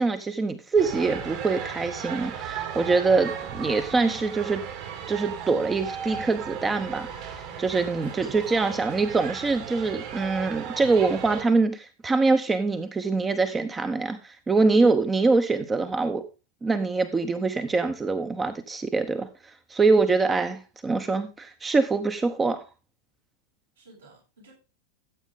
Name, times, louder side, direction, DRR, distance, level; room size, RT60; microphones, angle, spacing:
voice 1, 0.0-4.6 5.1-16.2 16.6-22.6, right 3 dB, 15° right, 1.0 m, -24 dB
sound 1, 0.8-11.4, right 7 dB, 45° right, 2.8 m, -36 dB
voice 2, 8.0-8.7 23.8-24.5, right 2 dB, 70° right, 7.1 m, -52 dB
14.5 x 8.3 x 3.7 m
figure-of-eight pair, 90°, 0 cm